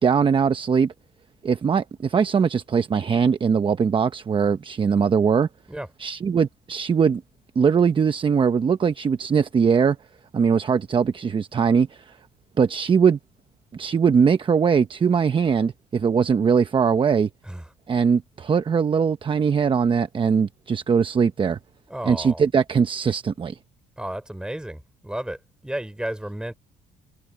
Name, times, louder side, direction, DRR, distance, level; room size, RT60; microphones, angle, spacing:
voice 1, 0.0-0.9 1.4-5.5 6.0-7.2 7.6-10.0 10.3-12.2 12.6-13.2 13.7-17.3 17.9-21.6 22.1-23.6, right 6 dB, 30° right, 0.9 m, -21 dB
voice 2, 17.4-17.7 21.9-22.5 24.0-26.5, right 1 dB, 5° right, 4.0 m, -33 dB
cardioid pair, 110°, 17 cm